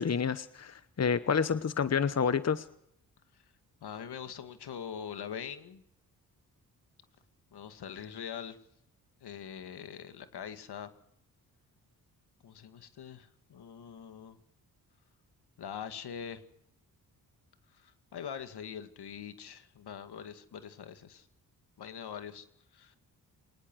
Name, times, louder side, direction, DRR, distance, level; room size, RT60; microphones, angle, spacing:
voice 1, 0.0-2.7, left 6 dB, 40° left, 14 dB, 1.1 m, -29 dB
voice 2, 3.8-5.8 7.5-8.6 9.2-10.9 12.4-14.4 15.6-16.4 17.8-21.2 21.8-22.4 22.7-23.0, left 8 dB, 75° left, 9 dB, 2.3 m, -43 dB
24.0 x 19.5 x 6.4 m, 0.73 s
cardioid pair, 55°, 39 cm